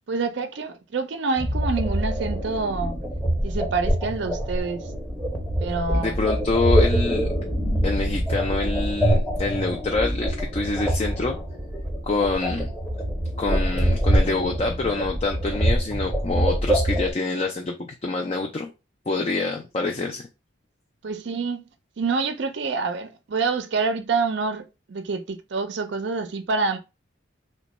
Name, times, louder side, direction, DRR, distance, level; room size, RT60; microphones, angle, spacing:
voice 1, 0.1-3.0 3.4-4.8 5.6-6.2 21.0-21.6 22.0-26.8, right 4 dB, 60° right, 0.4 m, -27 dB
sound 1, 1.4-17.1, equal, 5° right, 0.7 m, -25 dB
voice 2, 5.9-7.3 7.8-11.4 12.0-12.7 13.4-18.7 19.1-20.3, left 3 dB, 30° left, 0.3 m, -26 dB
3.0 x 2.2 x 4.0 m
head